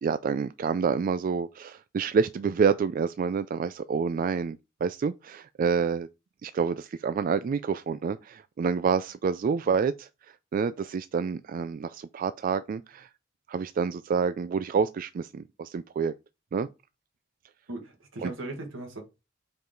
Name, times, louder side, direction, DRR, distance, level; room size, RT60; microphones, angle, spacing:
voice 1, 0.0-6.1 6.4-10.1 10.5-13.1 13.5-16.1 16.5-16.7 18.2-18.3, right 5 dB, 45° right, 0.3 m, -28 dB
voice 2, 17.7-19.0, right 2 dB, 80° right, 1.7 m, -38 dB
5.3 x 4.7 x 3.8 m
head